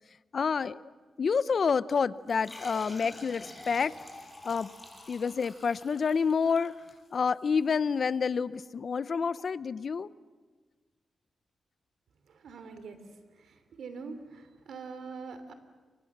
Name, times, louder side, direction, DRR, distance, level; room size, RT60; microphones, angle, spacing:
voice 1, 0.3-0.9 1.2-4.0 4.4-4.7 5.1-6.7 7.1-10.1, left 5 dB, 55° left, 17 dB, 0.7 m, -28 dB
sound 1, 2.3-7.4, left 1 dB, 15° left, 7.3 m, -48 dB
voice 2, 12.3-15.5, right 4 dB, 85° right, 10 dB, 3.0 m, -44 dB
29.5 x 24.5 x 7.4 m, 1.4 s
wide cardioid pair, 105°, 0 cm